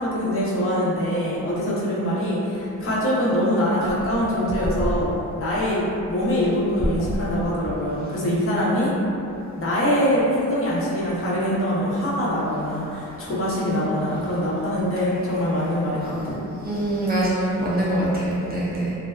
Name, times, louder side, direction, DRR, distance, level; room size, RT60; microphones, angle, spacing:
voice 1, 0.0-8.9 9.6-16.3, equal, 45° left, -8 dB, 0.6 m, -23 dB
voice 2, 16.6-19.0, right 1 dB, 30° right, -7 dB, 0.4 m, -23 dB
2.6 x 2.3 x 2.2 m, 2.8 s
wide cardioid pair, 120°, 32 cm